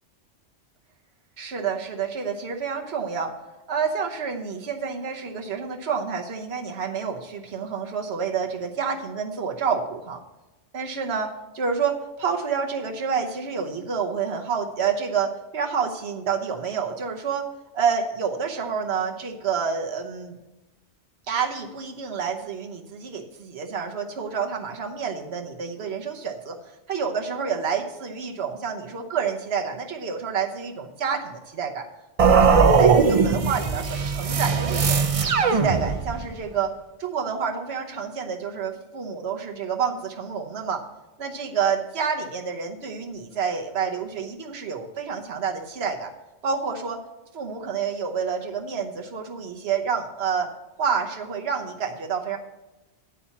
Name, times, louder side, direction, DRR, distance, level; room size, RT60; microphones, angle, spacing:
voice 1, 1.4-3.3 3.7-10.2 10.7-17.5 17.7-20.4 21.3-31.9 32.2-35.0 35.5-40.8 41.2-46.1 46.4-47.0 47.3-50.5 50.8-52.4, right 6 dB, 65° right, 2 dB, 1.2 m, -28 dB
sound 1, 32.2-36.3, right 5 dB, 40° right, 0.5 m, -19 dB
9.9 x 4.3 x 7.1 m, 1.0 s
omnidirectional pair, 1.2 m